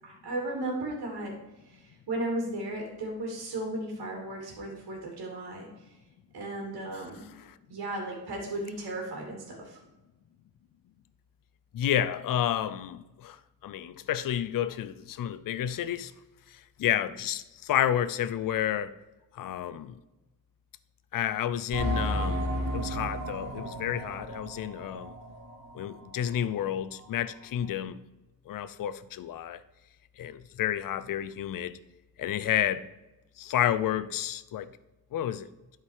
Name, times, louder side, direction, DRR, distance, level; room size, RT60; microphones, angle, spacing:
voice 1, 0.0-1.4 1.7-5.7 6.3-7.3 7.7-9.8, right 1 dB, 85° right, 2.6 m, -35 dB
voice 2, 11.7-16.1 16.5-18.9 19.3-20.0 21.1-25.1 25.7-28.0 28.5-29.6 30.2-31.8 32.2-32.9 33.4-34.7 35.1-35.5, left 10 dB, 60° left, 0.6 m, -30 dB
sound 1, 21.7-26.0 26.3-26.4 27.0-27.1, equal, 55° right, 2.9 m, -33 dB
11.5 x 4.8 x 4.8 m
wide cardioid pair, 130°, 37 cm